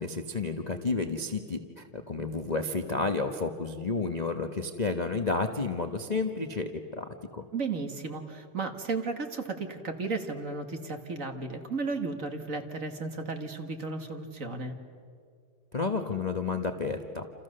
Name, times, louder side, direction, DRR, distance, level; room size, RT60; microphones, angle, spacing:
voice 1, 0.0-7.4 15.7-17.3, left 3 dB, 30° left, 6 dB, 0.7 m, -31 dB
voice 2, 7.5-14.7, right 3 dB, 40° right, 5 dB, 2.0 m, -34 dB
28.5 x 28.5 x 6.7 m, 2.3 s
omnidirectional pair, 2.4 m